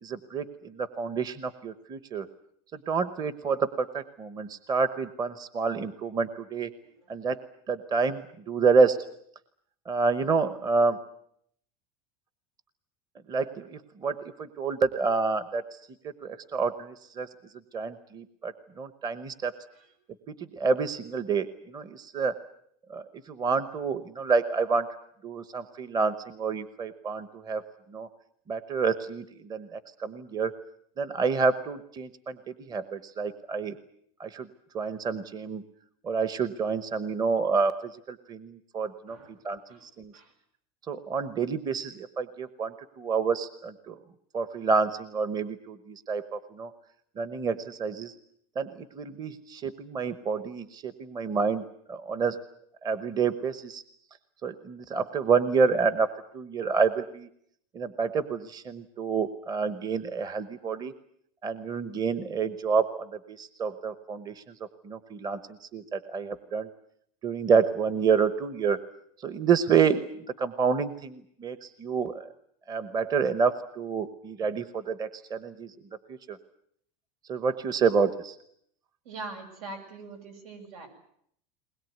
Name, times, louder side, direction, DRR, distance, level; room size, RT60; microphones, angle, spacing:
voice 1, 0.0-2.3 2.9-6.7 7.1-7.4 7.7-9.0 9.9-11.0 13.3-15.8 16.2-17.3 17.7-19.5 20.5-22.3 22.9-24.9 25.2-27.6 27.9-28.1 28.5-30.5 31.0-33.8 34.2-34.5 34.7-35.6 36.0-39.2 39.4-40.1 40.9-44.0 44.3-46.7 47.2-48.1 48.6-51.6 51.9-52.4 52.8-53.8 54.4-56.1 56.3-57.3 57.7-60.9 61.4-64.4 64.8-66.7 67.2-68.8 69.2-70.1 70.4-72.3 72.7-75.7 76.1-76.4 77.3-78.4, right 5 dB, 20° right, 13 dB, 1.0 m, -28 dB
voice 2, 79.0-80.9, right 3 dB, 85° right, 6 dB, 7.8 m, -42 dB
21.5 x 20.5 x 9.4 m, 0.69 s
supercardioid pair, 155°, 18 cm